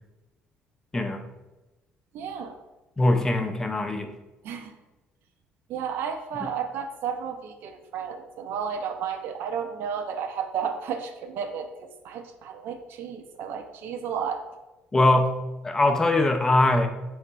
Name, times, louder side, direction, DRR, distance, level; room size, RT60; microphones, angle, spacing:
voice 1, 2.1-2.5 4.4-4.7 5.7-14.4, right 7 dB, 65° right, 6 dB, 0.4 m, -32 dB
voice 2, 3.0-4.1 14.9-15.4 15.6-16.9, left 2 dB, 15° left, 5 dB, 0.3 m, -21 dB
4.0 x 3.8 x 2.2 m, 1.1 s
cardioid pair, 145°, 4 cm